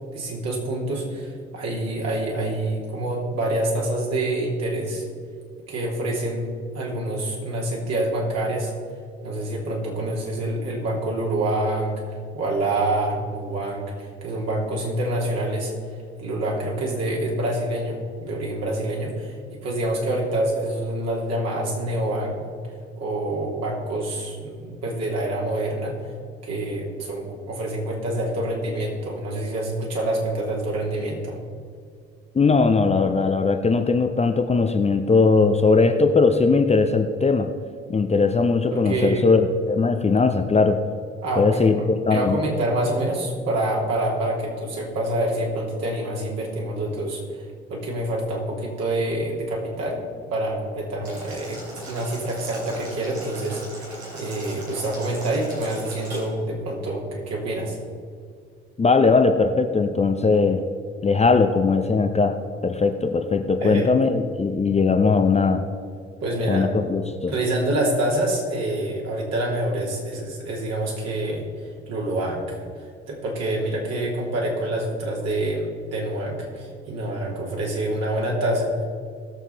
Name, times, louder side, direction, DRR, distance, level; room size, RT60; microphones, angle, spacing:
voice 1, 0.1-5.0 5.7-6.5 6.7-8.7 9.2-12.0 12.3-15.7 16.2-22.5 23.0-25.9 26.4-31.4 38.7-39.2 41.2-41.5 41.7-50.0 50.3-57.8 63.6-63.9 66.2-66.7 67.3-71.4 71.9-78.8, right 1 dB, 50° right, -2 dB, 3.0 m, -26 dB
voice 2, 32.3-37.5 37.9-40.8 41.4-42.4 58.8-60.6 61.0-65.6 66.5-67.3, left 4 dB, 20° left, 6 dB, 0.7 m, -19 dB
Boiling, 51.0-56.2, right 1 dB, 80° right, 3.2 m, -38 dB
17.5 x 7.3 x 4.0 m, 2.2 s
figure-of-eight pair, 50°, 32 cm